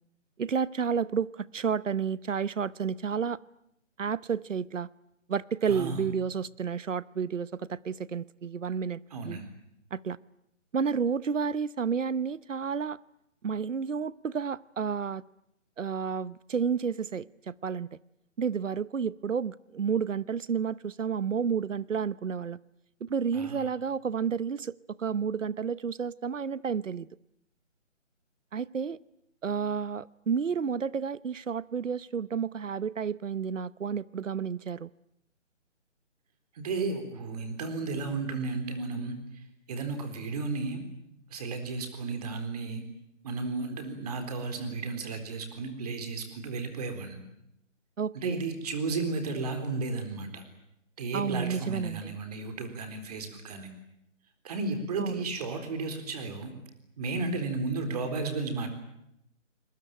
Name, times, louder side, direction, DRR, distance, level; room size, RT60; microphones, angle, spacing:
voice 1, 0.4-3.4 4.0-4.9 5.3-9.4 9.9-10.2 10.7-13.0 13.4-15.2 15.8-17.9 18.4-22.6 23.0-27.1 28.5-29.0 29.4-34.9 48.0-48.4 51.1-52.2 55.0-55.2, right 6 dB, 75° right, 20 dB, 1.0 m, -31 dB
voice 2, 5.7-6.0 9.1-9.4 23.3-23.6 36.6-39.2 39.7-40.8 41.3-42.8 43.2-47.2 48.1-50.4 51.0-53.7 54.4-56.5 57.0-58.7, right 3 dB, 30° right, 7 dB, 4.0 m, -33 dB
28.0 x 21.0 x 9.1 m, 0.81 s
hypercardioid pair, 160°, 38 cm